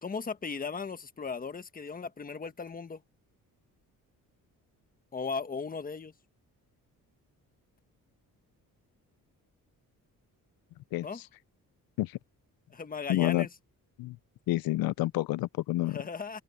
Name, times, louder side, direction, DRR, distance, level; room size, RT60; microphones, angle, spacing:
voice 1, 0.0-3.0 5.1-6.1 11.0-11.2 12.7-13.5 15.8-16.4, left 5 dB, 25° left, 1.2 m, -37 dB
voice 2, 10.9-11.2 12.0-12.2 13.1-13.5 14.0-14.2 14.5-16.0, left 16 dB, 90° left, 0.5 m, -29 dB
cardioid pair, 130°, 35 cm